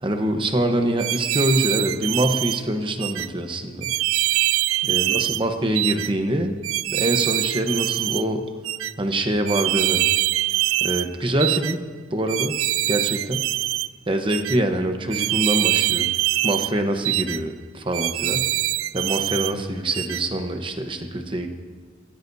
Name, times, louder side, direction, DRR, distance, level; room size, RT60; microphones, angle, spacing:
voice 1, 0.0-3.9 4.9-6.6 6.9-8.4 9.0-10.0 10.8-11.8 12.1-12.6 12.9-13.5 14.1-16.1 16.4-18.5 18.9-21.5, right 1 dB, 25° right, 5 dB, 1.0 m, -24 dB
sound 1, 1.0-2.6 3.0-3.3 3.8-5.4 5.8-6.1 6.6-8.2 8.6-8.9 9.5-11.1 11.4-11.7 12.3-13.9 14.3-14.6 15.1-16.7 17.0-17.4 17.9-19.5 19.9-20.2, right 16 dB, 90° right, 0.4 m, -24 dB
20.0 x 15.5 x 2.8 m, 1.5 s
head